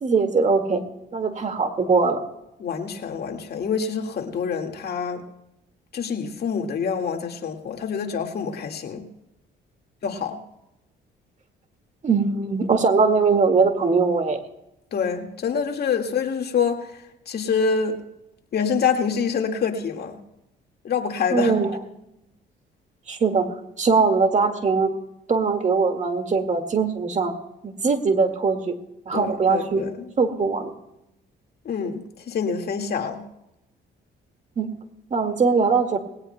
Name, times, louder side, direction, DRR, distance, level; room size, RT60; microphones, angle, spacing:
voice 1, 0.0-0.8 1.1-2.2 12.0-14.4 21.3-21.7 23.1-24.9 25.3-27.3 27.6-28.8 29.1-29.8 30.2-30.7 34.6-34.7 35.1-36.0, right 4 dB, 40° right, 6 dB, 1.9 m, -21 dB
voice 2, 2.6-5.2 5.9-9.0 10.0-10.4 14.9-16.9 17.3-18.0 18.5-20.2 20.8-21.5 29.1-30.1 31.7-33.2, left 6 dB, 55° left, 4 dB, 1.9 m, -26 dB
20.0 x 18.0 x 2.2 m, 0.88 s
cardioid pair, 85°, 19 cm